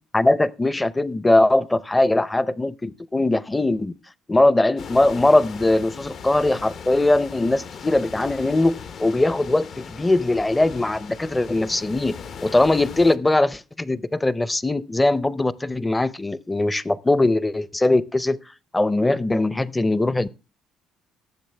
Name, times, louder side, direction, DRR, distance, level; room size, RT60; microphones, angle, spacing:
voice 1, 0.1-3.9 4.3-8.7 9.0-18.4 18.7-20.3, left 2 dB, 15° left, 0.6 m, -20 dB
sound 1, 4.8-13.2, left 6 dB, 55° left, 0.8 m, -38 dB
18.5 x 7.5 x 3.3 m
cardioid pair, 105°, 0 cm